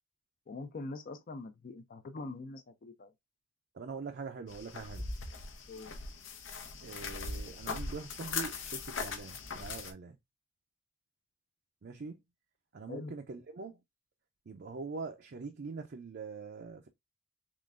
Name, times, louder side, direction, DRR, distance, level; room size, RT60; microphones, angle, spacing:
voice 1, 0.5-3.1 5.7-6.0 12.9-13.1, left 3 dB, 45° left, 0.4 m, -43 dB
voice 2, 3.7-5.1 6.8-10.2 11.8-12.2 12.7-13.8 14.5-16.9, right 4 dB, 55° right, 0.5 m, -43 dB
sound 1, 4.5-9.9, left 4 dB, 80° left, 0.8 m, -40 dB
3.7 x 3.2 x 2.4 m
head